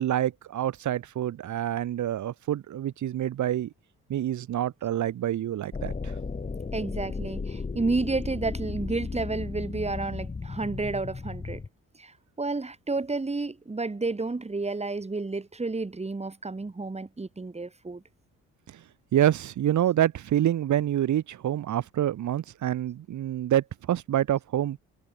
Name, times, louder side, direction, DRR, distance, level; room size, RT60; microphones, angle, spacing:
voice 1, 0.0-3.7 4.1-6.1 18.7-18.8 19.1-24.8, right 11 dB, 70° right, 5.4 m, -27 dB
sound 1, 5.7-11.7, left 4 dB, 25° left, 2.7 m, -35 dB
voice 2, 6.7-11.6 12.0-18.0, right 3 dB, 20° right, 7.4 m, -31 dB
cardioid pair, 90°, 30 cm